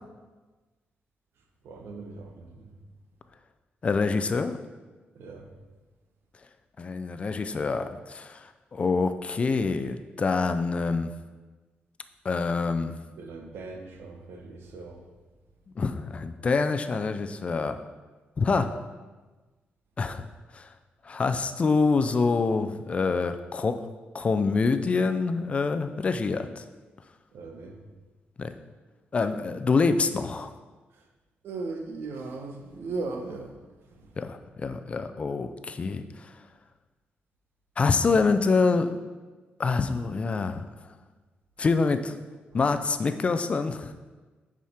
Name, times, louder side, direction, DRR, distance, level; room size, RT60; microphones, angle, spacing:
voice 1, 1.6-2.7 5.1-5.5 13.2-15.1 27.3-27.8 31.4-33.6 33.9-34.2 42.5-42.6, right 3 dB, 90° right, 3 dB, 1.0 m, -38 dB
voice 2, 3.8-4.6 6.8-11.1 12.2-13.0 15.8-17.8 18.4-18.7 20.0-20.2 20.5-20.7 21.0-23.8 24.1-26.6 28.4-28.5 29.1-30.5 34.2-36.3 37.8-39.0 39.6-40.7 41.6-42.2 42.5-43.9, left 4 dB, 35° left, 9 dB, 0.4 m, -26 dB
9.3 x 4.9 x 4.3 m, 1.3 s
wide cardioid pair, 145°, 4 cm